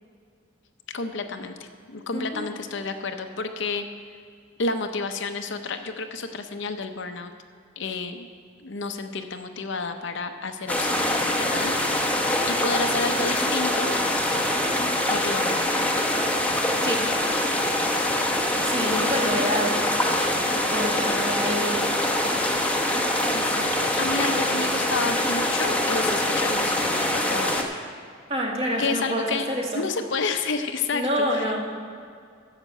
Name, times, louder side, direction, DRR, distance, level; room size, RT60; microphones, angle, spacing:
voice 1, 0.9-3.8 4.6-7.3 7.8-8.3 8.6-11.7 12.5-14.0 15.1-15.9 23.3-27.6 28.8-29.5 29.7-31.1 31.3-31.5, left 4 dB, 65° left, 6 dB, 0.7 m, -30 dB
voice 2, 2.1-2.5 16.8-17.1 18.6-19.8 20.4-21.8 28.3-29.9 30.9-31.6, equal, 30° right, -2 dB, 1.9 m, -27 dB
sound 1, 10.7-27.6, left 1 dB, 5° left, 0.9 m, -24 dB
11.0 x 7.4 x 6.7 m, 2.2 s
head